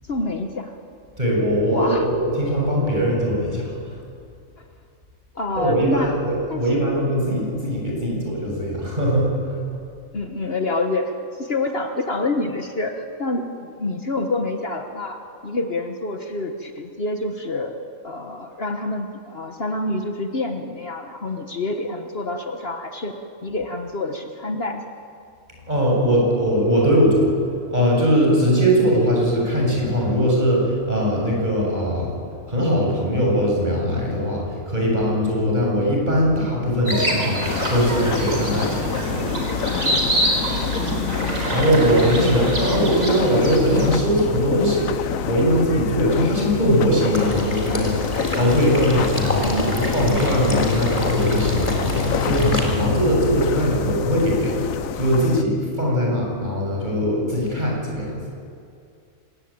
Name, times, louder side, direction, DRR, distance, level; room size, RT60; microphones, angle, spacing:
voice 1, 0.1-0.7 1.7-2.1 5.3-6.1 6.5-6.7 10.1-17.8 18.0-23.1 23.4-24.8 40.9-41.5 49.4-49.7, left 2 dB, 50° left, 5 dB, 1.5 m, -27 dB
voice 2, 1.2-4.0 5.6-9.6 25.7-27.3 27.7-32.1 32.5-39.3 41.5-58.2, equal, 35° right, -2 dB, 7.7 m, -21 dB
sound 1, 36.9-44.0, right 1 dB, 90° right, 4.8 m, -25 dB
sound 2, 37.4-55.4, left 9 dB, 80° left, 1.2 m, -28 dB
Water / Liquid, 47.1-52.6, equal, 25° left, 3.9 m, -26 dB
25.5 x 20.5 x 8.8 m, 2.4 s
omnidirectional pair, 1.4 m